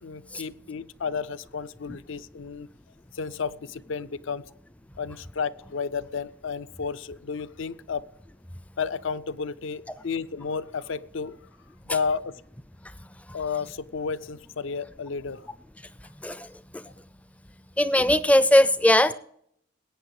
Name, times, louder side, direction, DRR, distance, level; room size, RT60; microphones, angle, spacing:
voice 1, 0.0-2.7 3.1-4.4 5.0-8.0 8.8-11.4 11.9-12.4 13.3-15.5, left 5 dB, 70° left, 16 dB, 0.5 m, -32 dB
voice 2, 17.8-19.1, left 1 dB, 5° left, 15 dB, 0.4 m, -19 dB
19.5 x 8.9 x 4.8 m, 0.70 s
head